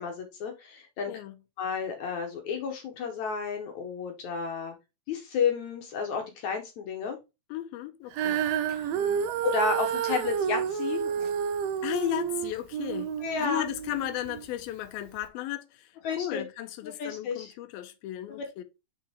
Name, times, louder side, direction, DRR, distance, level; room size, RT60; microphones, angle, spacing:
voice 1, 0.0-1.2 1.6-4.7 5.1-7.2 8.7-9.0 9.4-11.3 13.2-13.7 16.0-16.4 16.8-17.5 18.4-18.5, left 5 dB, 65° left, 2.0 m, -32 dB
voice 2, 7.5-8.4 9.0-9.3 11.8-13.1 13.4-18.6, left 13 dB, 85° left, 2.5 m, -35 dB
Female singing, 8.1-14.5 15.2-15.3, right 8 dB, 85° right, 2.3 m, -30 dB
6.6 x 4.3 x 3.5 m
omnidirectional pair, 4.2 m